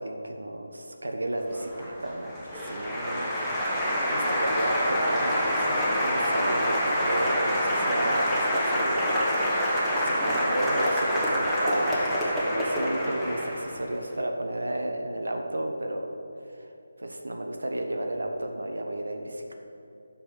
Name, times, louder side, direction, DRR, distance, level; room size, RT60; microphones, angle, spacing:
voice 1, 0.0-3.4 4.1-9.6 10.0-16.2 16.5-16.7 17.0-19.5, right 1 dB, 75° right, 3 dB, 1.0 m, -32 dB
Applause, 1.5-13.9, equal, ahead, 1.4 m, -26 dB
9.9 x 6.1 x 6.6 m, 2.9 s
figure-of-eight pair, 155°, 0 cm